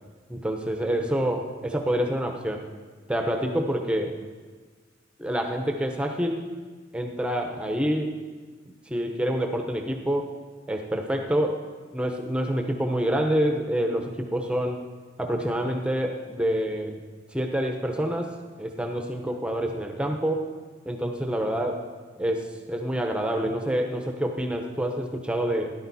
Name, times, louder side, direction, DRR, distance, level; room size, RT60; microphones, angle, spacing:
voice 1, 0.3-2.6 3.1-4.2 5.2-6.5 6.9-8.1 8.9-10.3 10.7-11.6 11.9-14.8 15.2-17.0 17.3-20.5 20.8-21.8 22.2-25.7, equal, 5° right, 3 dB, 0.9 m, -27 dB
17.0 x 11.5 x 4.2 m, 1.4 s
head